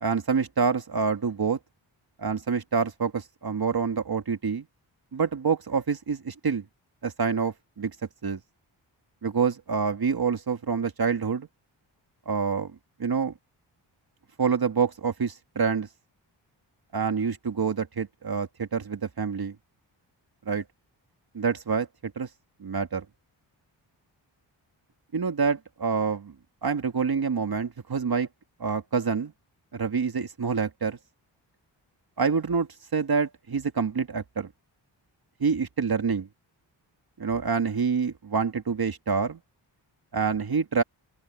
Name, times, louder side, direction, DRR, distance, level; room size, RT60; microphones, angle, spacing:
voice 1, 0.0-1.6 2.2-4.7 5.1-6.6 7.0-8.0 8.2-8.4 9.2-11.5 12.3-12.7 13.0-13.3 14.4-15.9 16.9-19.6 20.5-20.6 21.3-22.3 22.6-23.1 25.1-26.3 26.6-28.3 28.6-29.3 29.7-31.0 32.2-34.5 35.4-36.3 37.2-39.4 40.1-40.8, right 5 dB, 50° right, 2.1 m, -27 dB
open air
cardioid pair, 55°, 47 cm